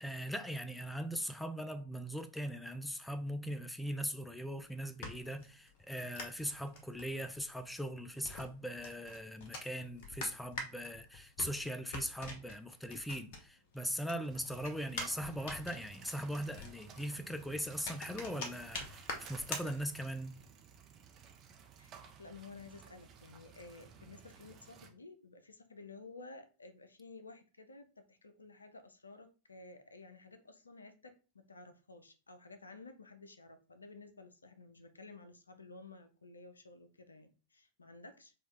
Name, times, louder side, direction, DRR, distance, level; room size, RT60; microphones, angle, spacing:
voice 1, 0.0-20.4, equal, 5° left, 0.3 m, -40 dB
sound 1, 4.6-13.7 14.0-20.3, left 2 dB, 50° left, 0.9 m, -46 dB
sound 2, 14.3-24.9, right 6 dB, 30° right, 0.7 m, -55 dB
voice 2, 22.2-38.3, left 3 dB, 75° left, 0.5 m, -54 dB
4.3 x 2.4 x 3.2 m
figure-of-eight pair, 90°, 0 cm